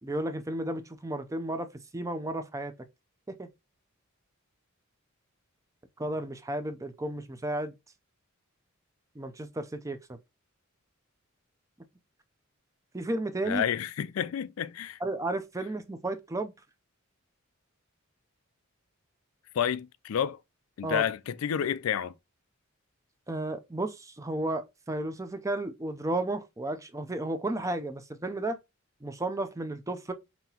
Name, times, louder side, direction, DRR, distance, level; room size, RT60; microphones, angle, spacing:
voice 1, 0.0-2.7 3.3-3.5 6.0-7.7 9.2-10.2 12.9-13.6 15.0-16.5 20.8-21.0 23.3-28.6 29.0-30.1, right 2 dB, 15° right, 0.5 m, -33 dB
voice 2, 13.4-15.0 19.5-20.4 20.8-22.1, left 9 dB, 80° left, 0.3 m, -30 dB
5.6 x 2.8 x 2.8 m
head